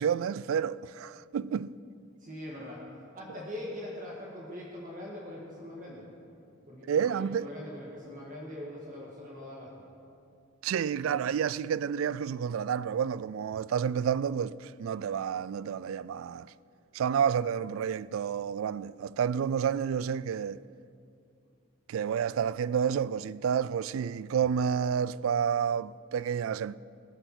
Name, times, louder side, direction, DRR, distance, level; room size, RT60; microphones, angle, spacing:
voice 1, 0.0-1.8 6.9-7.5 10.6-16.5 16.9-20.6 21.9-26.8, right 7 dB, 85° right, 0.3 m, -30 dB
voice 2, 2.2-2.9 3.1-6.0 6.7-9.8, left 1 dB, 40° right, 1.8 m, -42 dB
18.0 x 7.0 x 6.0 m
head